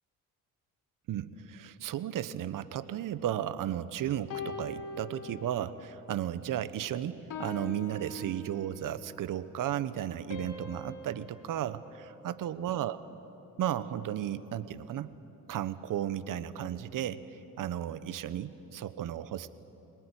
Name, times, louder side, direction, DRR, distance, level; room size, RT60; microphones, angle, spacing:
voice 1, 1.1-13.0 13.6-15.1 15.5-19.5, right 11 dB, 70° right, 15 dB, 1.1 m, -34 dB
sound 1, 4.3-5.9 6.3-6.6 7.3-9.0 10.3-12.7, left 3 dB, 70° left, 4.3 m, -43 dB
24.0 x 19.0 x 10.0 m, 3.0 s
supercardioid pair, 70°, 34 cm